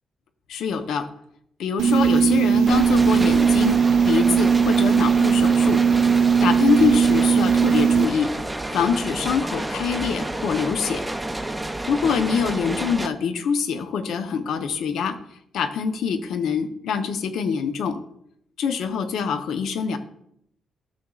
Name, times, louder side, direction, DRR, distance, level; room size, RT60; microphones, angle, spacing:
voice 1, 0.5-1.1 1.6-3.8 4.0-5.8 6.4-8.3 8.7-11.0 11.9-15.2 15.5-18.0 18.6-20.0, left 6 dB, 80° left, 9 dB, 0.7 m, -24 dB
sound 1, 1.8-8.1, right 6 dB, 75° right, 0.4 m, -18 dB
sound 2, 2.7-13.1, right 1 dB, 10° right, 0.5 m, -30 dB
13.5 x 6.2 x 2.4 m, 0.73 s
cardioid pair, 90°, 0 cm